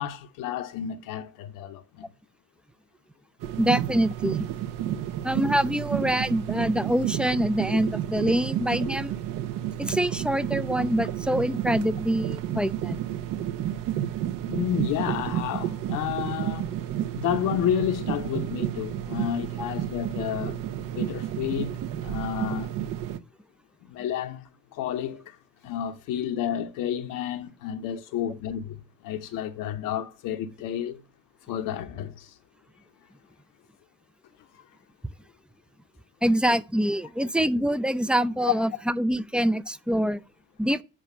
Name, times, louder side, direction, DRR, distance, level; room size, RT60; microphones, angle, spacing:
voice 1, 0.0-2.1 14.5-16.7 17.1-22.7 23.9-25.4 25.6-28.8 29.0-31.0 31.5-32.3 34.5-34.6 38.5-38.6, left 10 dB, 55° left, 0.8 m, -31 dB
sound 1, 3.4-23.2, right 11 dB, 55° right, 0.8 m, -31 dB
voice 2, 3.6-4.4 5.2-9.1 9.8-13.0 36.2-40.2 40.6-40.8, equal, 5° right, 0.4 m, -25 dB
7.5 x 4.9 x 6.5 m
figure-of-eight pair, 45°, 40 cm